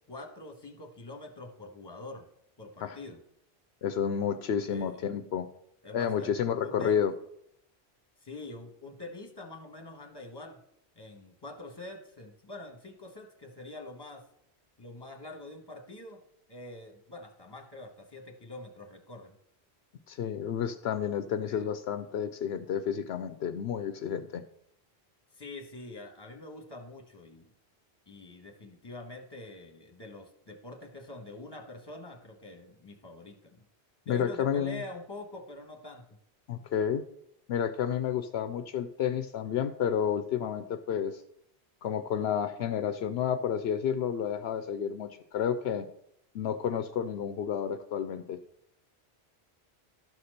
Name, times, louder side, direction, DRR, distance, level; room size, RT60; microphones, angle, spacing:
voice 1, 0.1-2.3 2.6-3.2 4.7-5.0 5.8-6.3 6.6-7.0 8.2-10.6 10.9-14.2 14.8-16.2 16.5-19.3 21.4-21.7 25.3-27.5 28.1-33.6 34.1-36.2, left 2 dB, 25° left, 3 dB, 1.4 m, -45 dB
voice 2, 3.8-5.5 5.9-7.1 20.1-24.4 34.1-34.8 36.5-37.0 37.5-41.2 41.8-45.9 46.3-48.4, left 8 dB, 75° left, 9 dB, 0.8 m, -30 dB
12.0 x 4.3 x 6.5 m, 0.75 s
omnidirectional pair, 1.1 m